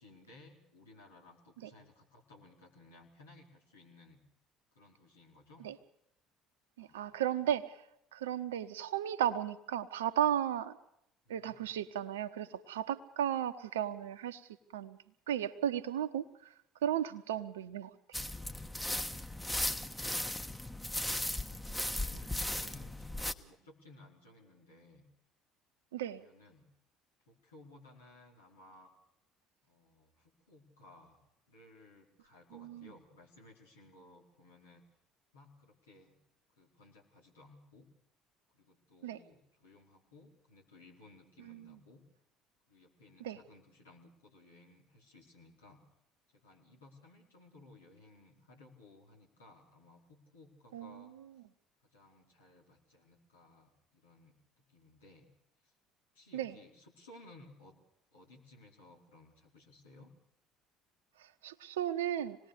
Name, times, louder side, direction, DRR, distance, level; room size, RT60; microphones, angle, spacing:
voice 1, 0.0-4.2 4.7-5.7 6.8-7.4 8.2-8.4 11.2-11.7 21.8-25.1 26.0-26.7 27.3-28.9 29.6-34.8 35.3-36.2 36.6-37.9 38.5-42.0 42.7-45.8 46.3-51.1 51.8-55.3 55.6-55.7 56.1-57.8 58.1-60.1, left 2 dB, 80° left, -1 dB, 4.6 m, -59 dB
voice 2, 6.8-7.8 8.1-10.8 11.3-14.4 14.7-15.0 15.3-16.3 16.8-18.2 25.9-26.2 32.5-32.9 39.0-39.2 41.5-41.7 43.2-43.4 50.7-51.0 56.3-56.6 61.2-62.4, right 10 dB, 75° right, 12 dB, 1.0 m, -35 dB
sound 1, 18.1-23.3, left 1 dB, 5° left, 1.4 m, -37 dB
26.0 x 19.5 x 6.8 m, 0.78 s
figure-of-eight pair, 55°, 0 cm